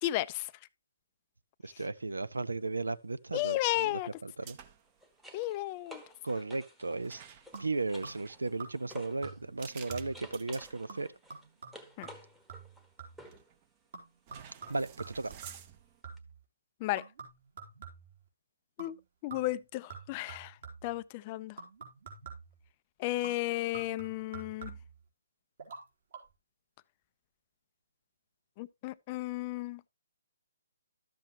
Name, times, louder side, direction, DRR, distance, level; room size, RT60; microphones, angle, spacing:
voice 1, 0.0-0.5 3.3-4.1 5.3-6.0 12.0-12.1 16.8-17.0 18.8-19.0 19.2-20.5 20.8-21.6 23.0-24.7 28.6-29.8, left 17 dB, 30° left, 0.4 m, -33 dB
voice 2, 1.6-4.6 6.2-7.2 7.6-11.1 14.7-15.3, right 3 dB, 85° right, 0.6 m, -35 dB
sound 1, 2.0-2.2 4.5-9.4 9.8-13.5 16.2-16.3, equal, 5° right, 1.1 m, -54 dB
sound 2, 4.4-5.0 5.2-5.5 7.0-11.4 11.9-12.0 13.2-13.7 14.3-16.0, right 8 dB, 30° right, 0.8 m, -52 dB
sound 3, 7.5-8.3 8.6-9.0 9.2-9.6 9.9-10.3 10.9-13.3 13.9-16.4 17.0-18.2 18.8-19.0 19.3-21.0 21.6-22.6 23.2-25.0 25.6-25.8 26.1-26.2, right 5 dB, 55° right, 3.8 m, -48 dB
12.0 x 7.4 x 2.9 m
figure-of-eight pair, 145°, 0 cm